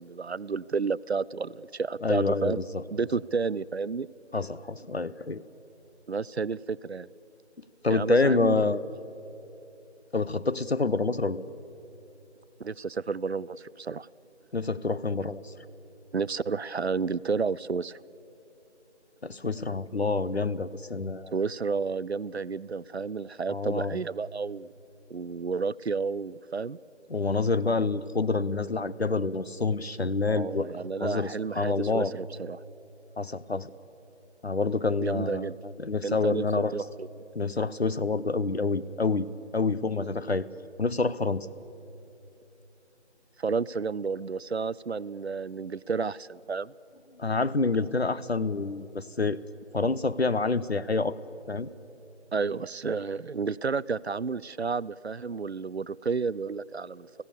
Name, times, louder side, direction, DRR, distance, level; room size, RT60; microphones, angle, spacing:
voice 1, 0.0-2.6 2.9-4.1 6.1-7.1 7.9-8.7 12.6-14.1 16.1-18.0 21.3-24.7 25.1-26.8 30.3-32.6 35.0-35.6 36.0-37.1 43.4-46.7 52.3-57.2, right 5 dB, 65° right, 21 dB, 0.5 m, -31 dB
voice 2, 2.0-2.8 4.3-5.4 7.8-8.8 10.1-11.4 14.5-15.5 19.2-21.3 23.5-24.0 27.1-30.7 31.0-32.1 33.2-33.7 34.4-36.7 37.3-39.3 39.5-40.5 40.8-41.5 47.2-49.4 49.7-51.2 51.5-51.7, left 3 dB, 65° left, 15 dB, 0.8 m, -27 dB
30.0 x 16.5 x 6.8 m, 3.0 s
figure-of-eight pair, 180°, 35 cm